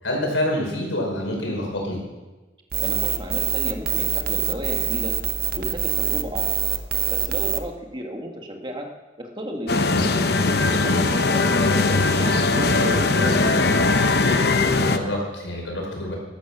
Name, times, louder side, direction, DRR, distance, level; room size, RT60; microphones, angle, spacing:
voice 1, 0.0-2.0 9.9-10.0 10.8-11.0 14.7-16.1, left 1 dB, 85° left, -1 dB, 5.0 m, -27 dB
sound 1, 2.7-7.6, right 10 dB, 50° right, 0.8 m, -24 dB
voice 2, 2.8-5.1 5.5-6.5 7.1-8.9 9.2-9.8 10.8-13.7, equal, 25° right, 2 dB, 1.7 m, -33 dB
sound 2, 9.7-15.0, left 3 dB, 55° left, 0.8 m, -20 dB
13.5 x 12.0 x 6.0 m, 1.2 s
head